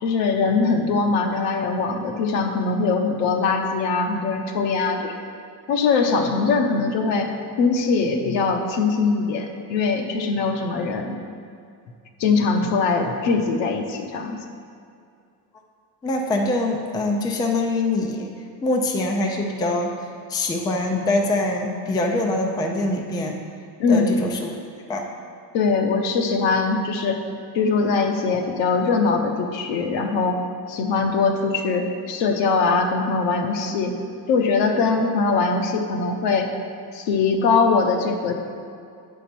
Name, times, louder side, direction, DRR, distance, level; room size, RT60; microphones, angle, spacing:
voice 1, 0.0-5.1 5.7-7.3 7.6-11.2 12.2-14.4 23.8-24.1 25.5-27.2 27.5-30.4 30.7-34.0 34.3-36.5 36.9-38.3, left 4 dB, 85° left, 4 dB, 1.1 m, -21 dB
voice 2, 16.0-18.3 18.6-19.9 20.3-23.4 23.9-24.6 24.9-25.1, left 2 dB, 10° left, 2 dB, 0.3 m, -24 dB
8.3 x 5.2 x 6.0 m, 2.4 s
cardioid pair, 180°, 43 cm